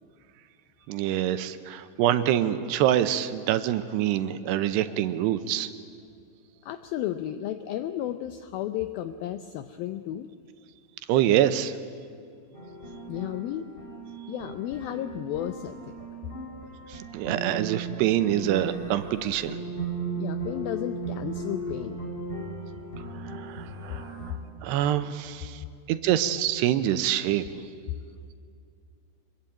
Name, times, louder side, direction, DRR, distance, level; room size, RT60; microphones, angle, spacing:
voice 1, 0.9-5.7 11.1-11.7 17.1-19.6 23.4-24.0 24.6-25.5 25.9-27.4, right 12 dB, 80° right, 11 dB, 2.8 m, -25 dB
voice 2, 6.6-10.3 13.1-13.7 14.3-16.0 20.1-22.1, left 12 dB, 85° left, 10 dB, 2.1 m, -33 dB
sound 1, 12.5-24.3, right 3 dB, 15° left, 3.4 m, -36 dB
25.5 x 21.5 x 9.0 m, 2.3 s
omnidirectional pair, 5.1 m